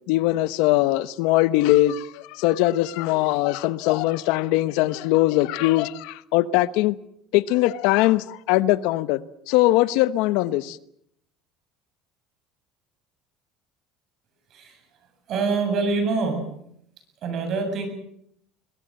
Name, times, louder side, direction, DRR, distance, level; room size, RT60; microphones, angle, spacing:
voice 1, 0.1-7.0 7.3-9.2 9.5-10.8, left 16 dB, 75° left, 1.0 m, -21 dB
voice 2, 15.3-16.5 17.2-17.9, right 4 dB, 50° right, 7.6 m, -25 dB
22.0 x 22.0 x 7.7 m
cardioid pair, 125°, 0 cm